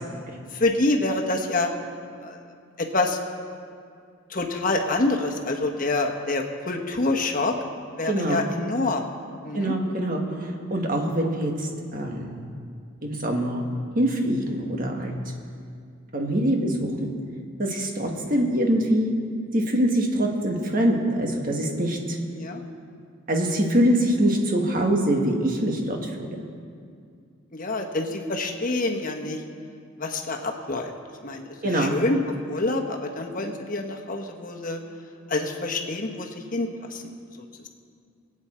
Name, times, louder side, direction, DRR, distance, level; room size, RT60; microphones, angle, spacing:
voice 1, 0.5-1.7 2.2-2.4 2.8-3.2 4.3-7.6 8.0-9.1 9.4-9.7 22.3-22.6 27.5-29.4 30.0-30.9 31.2-32.2 32.5-34.8 35.3-37.0, left 2 dB, 40° left, 3 dB, 1.3 m, -26 dB
voice 2, 8.1-8.4 9.5-11.5 11.9-12.4 13.0-13.6 13.9-15.1 16.1-17.1 17.6-19.1 19.5-22.2 23.3-26.3 31.6-31.9, right 1 dB, 40° right, 1 dB, 1.7 m, -24 dB
22.5 x 8.9 x 4.4 m, 2.3 s
head